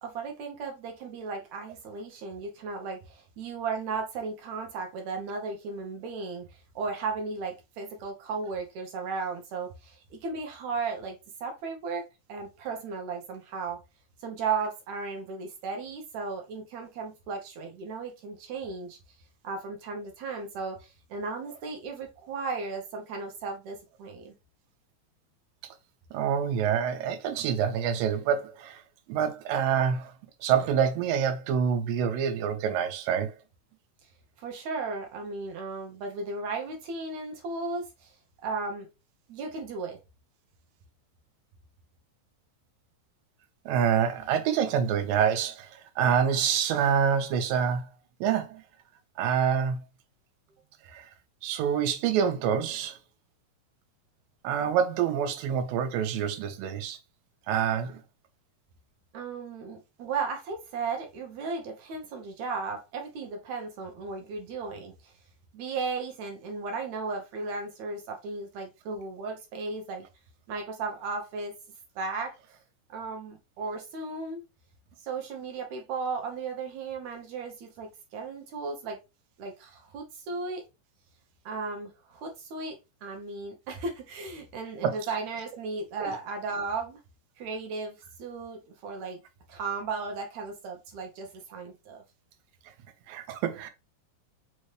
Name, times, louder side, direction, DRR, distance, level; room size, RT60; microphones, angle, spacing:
voice 1, 0.0-6.5 6.8-12.0 12.3-13.8 14.2-19.0 19.4-24.3 34.4-38.1 38.4-38.9 39.3-40.0 59.1-65.1 65.5-70.1 70.5-71.5 72.0-72.3 72.9-74.4 75.0-79.0 79.4-80.6 81.5-87.0 87.4-89.2 89.5-92.0, right 4 dB, 70° right, 1.9 m, -35 dB
voice 2, 26.1-28.8 29.1-30.1 30.4-33.3 43.7-47.9 48.2-48.6 49.2-49.8 50.9-51.1 51.4-53.0 54.4-57.0 57.5-58.0 84.8-85.0 86.0-86.1 93.1-93.7, right 8 dB, 85° right, 2.4 m, -26 dB
5.4 x 2.7 x 3.1 m
omnidirectional pair, 3.9 m